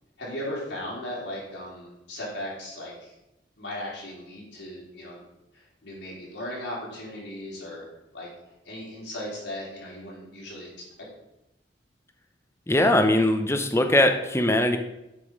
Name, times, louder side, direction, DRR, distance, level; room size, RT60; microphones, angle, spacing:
voice 1, 0.2-3.1 3.6-5.2 5.5-7.8 8.1-8.3 8.6-10.8, left 1 dB, 85° left, -5 dB, 3.6 m, -37 dB
voice 2, 12.7-14.8, left 1 dB, 15° left, 6 dB, 0.7 m, -21 dB
8.2 x 5.3 x 5.2 m, 0.92 s
head